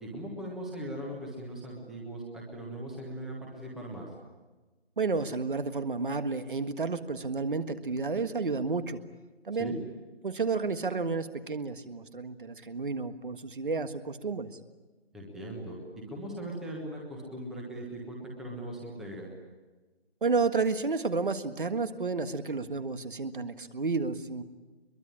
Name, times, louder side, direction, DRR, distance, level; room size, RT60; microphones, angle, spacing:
voice 1, 0.0-4.1 9.6-9.8 15.1-15.8 16.1-19.3, right 1 dB, ahead, -2 dB, 1.4 m, -39 dB
voice 2, 5.0-9.0 9.4-9.8 10.2-14.5 20.2-24.4, right 4 dB, 50° right, 10 dB, 1.7 m, -31 dB
22.5 x 22.5 x 10.0 m, 1.2 s
figure-of-eight pair, 160°, 32 cm